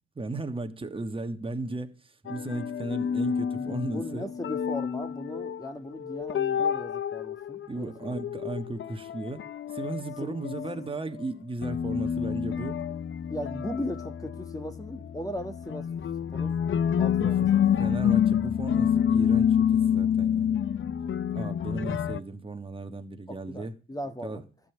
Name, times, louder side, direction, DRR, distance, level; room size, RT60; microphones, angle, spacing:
voice 1, 0.1-4.3 7.7-9.4 9.7-12.8 17.2-17.3 17.8-20.6 21.3-23.7 24.2-24.4, right 2 dB, 15° right, 1.3 m, -35 dB
sound 1, 2.3-5.7 5.9-10.9 11.2-11.3 11.6-22.2, left 8 dB, 40° left, 0.6 m, -28 dB
voice 2, 3.5-8.2 10.2-10.3 10.7-10.8 13.3-15.9 16.3-17.5 23.3-24.4, left 1 dB, 10° left, 1.4 m, -38 dB
12.5 x 5.5 x 9.1 m
cardioid pair, 90°, 30 cm